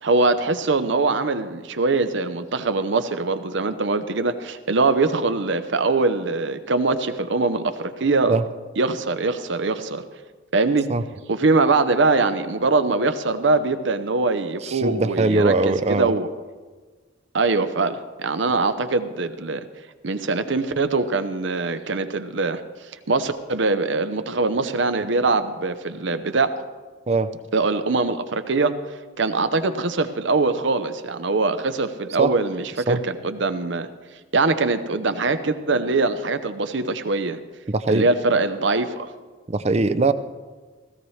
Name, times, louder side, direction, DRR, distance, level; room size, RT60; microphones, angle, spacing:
voice 1, 0.0-8.4 8.8-10.0 10.5-10.9 11.3-15.5 15.9-16.3 17.3-19.6 20.0-22.6 23.1-26.6 27.5-28.8 29.2-33.9 34.3-37.4 37.9-39.1, right 3 dB, 65° right, 10 dB, 0.7 m, -22 dB
voice 2, 14.6-16.1 27.1-27.3 32.2-32.3 32.9-33.0 37.7-38.1 39.5-40.1, right 3 dB, 30° right, 13 dB, 0.5 m, -21 dB
17.0 x 15.0 x 3.2 m, 1.4 s
head